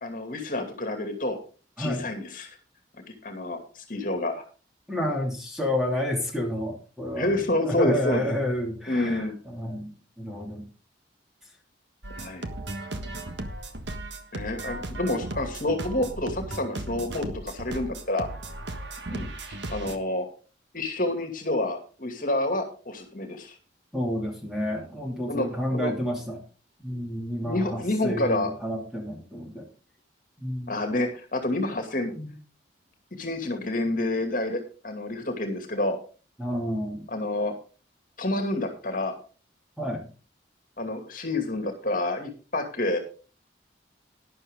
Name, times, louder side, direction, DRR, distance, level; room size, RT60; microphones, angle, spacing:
voice 1, 0.0-1.4 1.8-2.6 3.2-4.4 7.1-8.3 8.9-9.4 12.2-12.5 14.3-18.3 19.1-20.3 20.7-23.6 25.3-25.9 27.4-28.5 30.7-32.1 33.1-36.0 37.1-37.5 38.2-39.2 40.8-43.0, left 1 dB, 45° left, 5 dB, 2.4 m, -28 dB
voice 2, 1.8-2.1 4.9-7.3 7.6-10.6 23.9-26.4 26.8-29.7 30.4-30.7 32.2-32.3 36.4-37.1 39.8-40.1, left 1 dB, ahead, 0 dB, 2.8 m, -30 dB
sound 1, 12.0-20.0, right 2 dB, 70° right, 1.6 m, -36 dB
12.0 x 11.0 x 3.7 m, 0.35 s
head